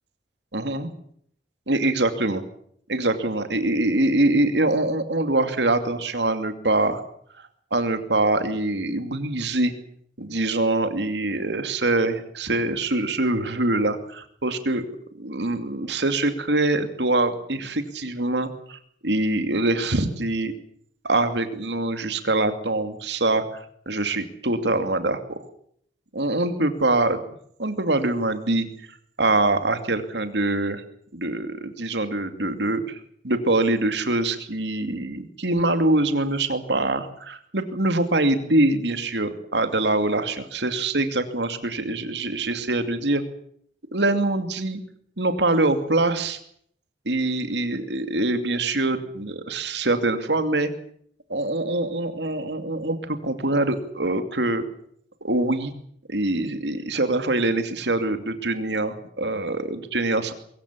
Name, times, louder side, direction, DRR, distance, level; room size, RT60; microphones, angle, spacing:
voice 1, 0.5-0.9 1.7-2.4 2.9-7.0 7.7-9.7 10.2-14.9 15.2-20.5 21.0-23.4 23.9-25.4 26.1-27.2 27.6-28.7 29.2-30.8 31.1-43.2 43.9-44.8 45.2-46.4 47.1-50.7 51.3-54.6 55.2-55.7 56.1-60.3, right 2 dB, 75° right, 9 dB, 2.6 m, -24 dB
23.5 x 15.5 x 9.9 m, 0.66 s
head